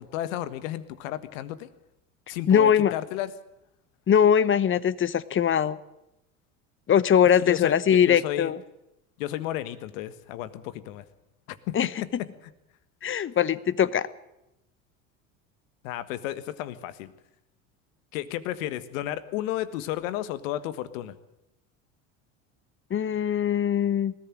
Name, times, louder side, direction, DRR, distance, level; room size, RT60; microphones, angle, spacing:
voice 1, 0.0-1.7 2.3-3.3 7.4-8.5 9.2-11.0 11.5-11.7 15.8-17.1 18.1-21.1, left 13 dB, 70° left, 14 dB, 1.5 m, -33 dB
voice 2, 2.5-2.9 4.1-5.8 6.9-8.6 11.7-11.9 13.0-14.1 22.9-24.1, left 8 dB, 30° left, 18 dB, 1.0 m, -21 dB
20.0 x 14.5 x 8.9 m, 0.89 s
hypercardioid pair, 75°, 41 cm